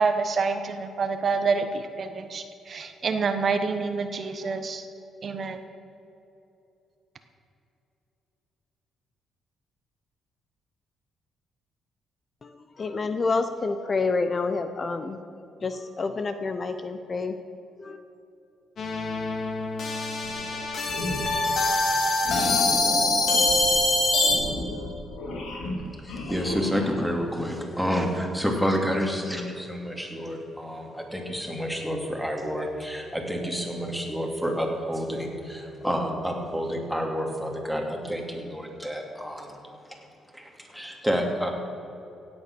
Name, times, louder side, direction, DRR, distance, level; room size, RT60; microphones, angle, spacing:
voice 1, 0.0-4.9 5.2-5.6, right 4 dB, 45° right, 8 dB, 1.0 m, -27 dB
voice 2, 12.8-15.2 15.6-17.3 17.8-18.0, left 4 dB, 40° left, 9 dB, 0.8 m, -28 dB
sound 1, 18.8-24.4, left 2 dB, 60° left, 2.5 m, -24 dB
sound 2, 20.2-20.6 20.9-21.5 22.2-27.2, left 2 dB, 80° left, 2.6 m, -34 dB
voice 3, 26.0-39.6 39.9-40.0 40.3-41.5, equal, ahead, 1 dB, 2.5 m, -29 dB
16.5 x 8.6 x 6.1 m, 2.8 s
cardioid pair, 90°, 0 cm